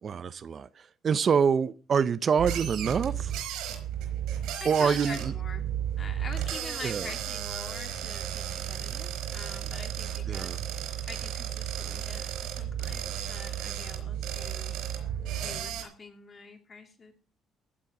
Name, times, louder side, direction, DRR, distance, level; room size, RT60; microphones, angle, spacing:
voice 1, 0.0-3.3 4.6-5.3 6.8-7.1 10.3-10.6, right 6 dB, 45° right, 16 dB, 0.6 m, -26 dB
sound 1, 2.4-15.8, right 10 dB, 90° right, 4.5 m, -34 dB
voice 2, 4.6-5.7 6.0-10.6 11.1-14.7 15.4-17.1, left 4 dB, 35° left, 5 dB, 2.8 m, -44 dB
15.5 x 7.5 x 6.0 m, 0.40 s
cardioid pair, 110°, 0 cm